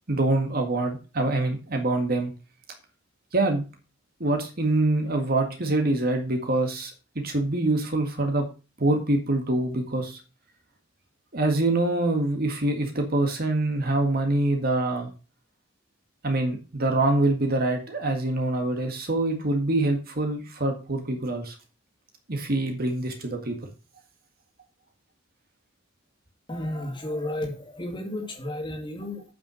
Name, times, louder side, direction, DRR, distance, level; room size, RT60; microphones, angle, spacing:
voice 1, 0.1-2.3 3.3-3.6 4.2-8.5 8.8-10.2 11.3-15.1 16.2-21.6 22.3-23.6, right 2 dB, 50° right, 4 dB, 1.9 m, -25 dB
voice 2, 26.5-29.2, left 1 dB, 25° left, 3 dB, 2.3 m, -32 dB
8.9 x 6.0 x 6.2 m, 0.33 s
head